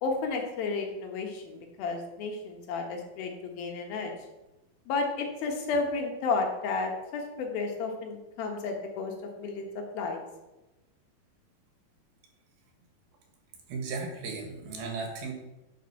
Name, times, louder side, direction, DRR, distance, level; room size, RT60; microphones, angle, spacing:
voice 1, 0.0-4.1 4.9-9.1 9.4-10.2, left 4 dB, 80° left, 2 dB, 3.1 m, -32 dB
voice 2, 13.7-15.3, right 4 dB, 90° right, 2 dB, 3.6 m, -35 dB
9.4 x 5.2 x 5.8 m, 1.0 s
omnidirectional pair, 4.2 m